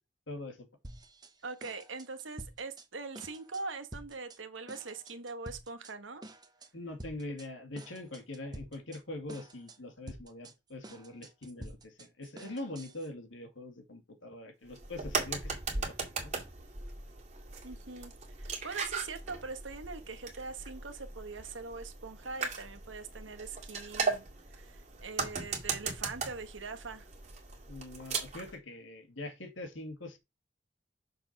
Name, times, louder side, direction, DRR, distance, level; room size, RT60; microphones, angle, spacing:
voice 1, 0.3-0.7 6.7-16.3 27.7-30.2, left 2 dB, 85° left, 2.4 m, -43 dB
sound 1, 0.8-1.3 1.6-2.9 3.1-3.6 3.9-4.4 4.7-5.9 6.2-6.7 7.0-7.5 7.8-9.0 9.3-9.8 10.1-13.1, right 1 dB, 20° right, 1.1 m, -49 dB
voice 2, 1.4-6.2 17.6-18.1 18.4-24.2 24.5-27.1, right 4 dB, 85° right, 1.4 m, -42 dB
sound 2, 14.7-28.5, right 4 dB, 40° right, 2.2 m, -38 dB
6.6 x 4.4 x 5.9 m
head